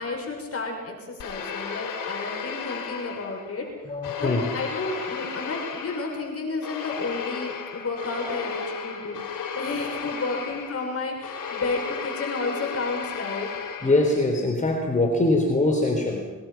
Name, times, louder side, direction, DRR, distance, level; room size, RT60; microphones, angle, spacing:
voice 1, 0.0-3.7 4.2-13.5, left 3 dB, 45° left, 1 dB, 6.8 m, -32 dB
sound 1, 1.2-3.6 4.0-14.3, left 5 dB, 80° left, 4.6 m, -34 dB
voice 2, 3.9-4.6 13.8-16.3, left 2 dB, 25° left, 2 dB, 3.8 m, -23 dB
25.0 x 23.0 x 6.0 m, 1.3 s
cardioid pair, 80°, 32 cm